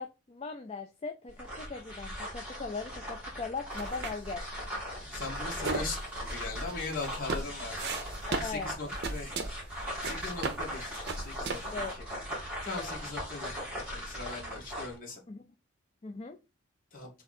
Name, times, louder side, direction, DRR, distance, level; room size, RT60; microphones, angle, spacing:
voice 1, 0.0-4.5 8.3-8.9 11.7-12.0 12.7-12.9 15.3-15.4 16.0-16.4, left 4 dB, 30° left, 5 dB, 0.4 m, -39 dB
sound 1, 1.3-15.0, equal, 5° right, 2.1 m, -39 dB
sound 2, 3.7-11.9, right 3 dB, 55° right, 0.7 m, -38 dB
voice 2, 5.1-7.9 8.4-9.4 10.0-12.0 12.6-13.6 13.9-15.2 16.9-17.1, left 3 dB, 45° left, -2 dB, 1.8 m, -40 dB
3.7 x 3.5 x 4.1 m, 0.28 s
head